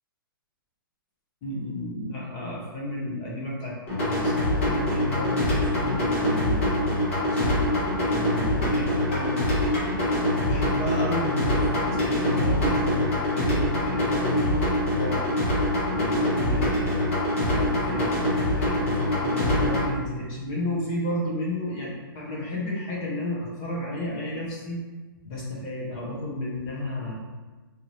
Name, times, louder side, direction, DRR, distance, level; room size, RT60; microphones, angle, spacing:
voice 1, 1.4-3.8 4.0-7.7 8.0-9.5 10.4-14.7 14.9-15.4 15.9-17.0 17.4-18.2 18.5-24.8 25.2-27.3, left 1 dB, 15° left, -4 dB, 0.5 m, -32 dB
sound 1, 3.9-19.9, left 1 dB, 35° left, 1.0 m, -24 dB
3.9 x 2.7 x 3.0 m, 1.3 s
hypercardioid pair, 170°, 12 cm